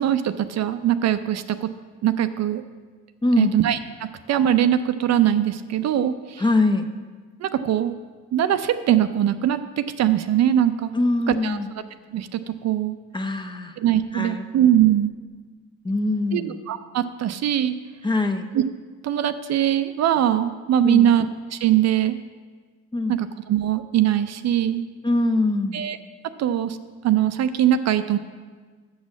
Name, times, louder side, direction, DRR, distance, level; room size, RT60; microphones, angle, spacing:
voice 1, 0.0-1.7 2.0-2.6 3.4-6.4 7.4-7.9 8.3-10.9 11.3-11.6 12.1-13.0 13.8-15.1 16.3-17.7 18.5-18.6 19.0-21.3 21.5-22.2 23.1-24.8 25.7-26.0 26.4-26.8 27.0-28.2, right 11 dB, 60° right, 11 dB, 0.5 m, -21 dB
voice 2, 3.2-3.5 6.4-6.9 10.9-11.7 13.1-13.7 14.1-14.5 15.8-16.5 18.0-18.5 20.8-21.1 22.9-23.2 25.0-25.8, left 2 dB, 15° left, 6 dB, 0.6 m, -22 dB
6.3 x 6.2 x 7.2 m, 1.5 s
cardioid pair, 90°, 30 cm